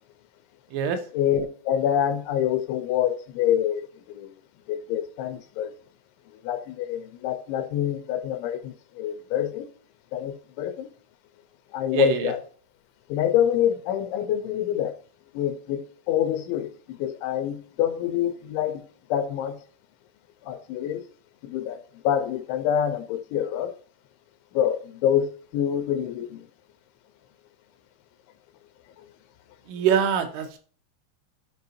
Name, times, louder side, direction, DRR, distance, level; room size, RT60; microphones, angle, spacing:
voice 1, 1.1-4.3 4.7-5.7 6.4-9.7 10.1-10.9 11.7-12.4 13.1-14.9 15.3-18.8 19.1-19.6 20.4-21.1 21.4-23.7 24.5-26.5, left 10 dB, 85° left, 2.8 m, -26 dB
voice 2, 11.9-12.3 29.7-30.5, right 7 dB, 85° right, 3.4 m, -23 dB
10.5 x 5.0 x 2.7 m
omnidirectional pair, 5.6 m